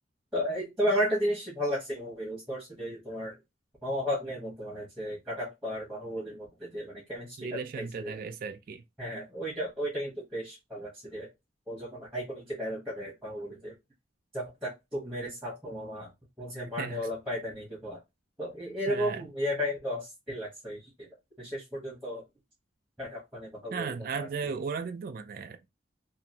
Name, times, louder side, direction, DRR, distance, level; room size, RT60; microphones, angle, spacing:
voice 1, 0.3-3.3 3.8-8.2 9.0-11.3 11.7-13.7 14.3-16.1 16.4-18.0 18.4-21.1 21.4-22.2 23.0-24.3, equal, ahead, 0.9 m, -34 dB
voice 2, 7.4-8.8 16.5-17.1 18.9-19.3 23.7-25.6, right 5 dB, 45° right, 0.3 m, -36 dB
2.9 x 2.6 x 2.7 m
head